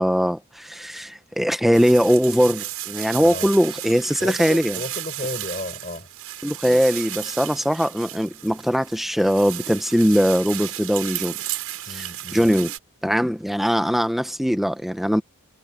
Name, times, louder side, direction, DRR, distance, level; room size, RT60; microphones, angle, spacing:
voice 1, 0.0-4.8 6.4-11.4 11.9-12.1 12.3-12.7 13.0-15.2, equal, ahead, 0.7 m, -21 dB
sound 1, 1.7-12.8, right 14 dB, 80° right, 7.2 m, -34 dB
voice 2, 3.2-3.6 4.2-6.1 11.9-12.5, left 2 dB, 35° left, 6.4 m, -33 dB
head